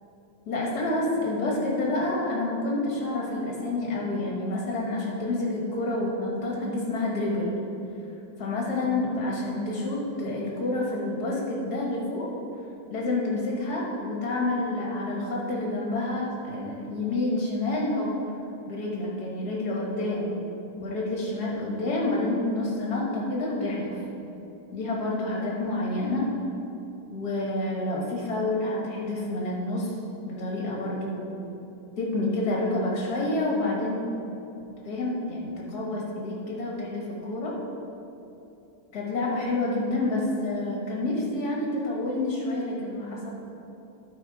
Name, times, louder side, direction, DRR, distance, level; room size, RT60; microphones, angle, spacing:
voice 1, 0.5-7.6 8.4-12.3 12.9-18.1 18.7-20.3 20.8-24.0 24.7-26.3 27.1-30.0 30.3-31.4 32.0-34.0 34.9-37.5 38.9-43.3, left 2 dB, 50° left, -3 dB, 2.0 m, -28 dB
12.0 x 4.7 x 4.8 m, 3.0 s
omnidirectional pair, 2.3 m